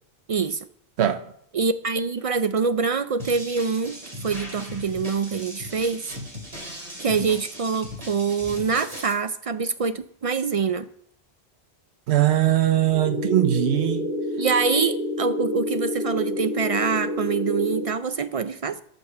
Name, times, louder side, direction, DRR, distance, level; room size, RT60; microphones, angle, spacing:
voice 1, 0.3-0.7 1.5-6.1 7.0-10.9 14.4-18.8, right 5 dB, 55° right, 0.4 m, -25 dB
sound 1, 3.2-9.1, equal, 35° right, 2.4 m, -38 dB
voice 2, 12.1-14.0, right 12 dB, 85° right, 0.9 m, -20 dB
sound 2, 12.9-17.9, left 1 dB, 45° left, 2.5 m, -28 dB
13.0 x 5.3 x 7.1 m
omnidirectional pair, 1.1 m